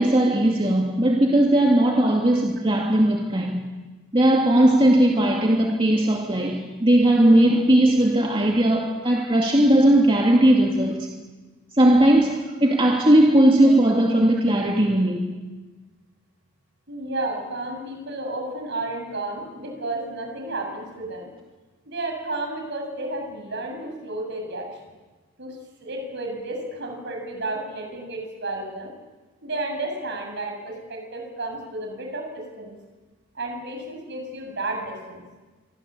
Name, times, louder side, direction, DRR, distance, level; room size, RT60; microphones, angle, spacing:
voice 1, 0.0-3.6 4.1-11.1 11.8-15.2, right 1 dB, 25° right, 0 dB, 2.4 m, -18 dB
voice 2, 16.9-21.3 21.8-24.7 25.4-28.9 29.4-32.7 33.3-35.2, right 2 dB, 55° right, 3 dB, 7.8 m, -32 dB
25.5 x 25.0 x 8.5 m, 1.3 s
head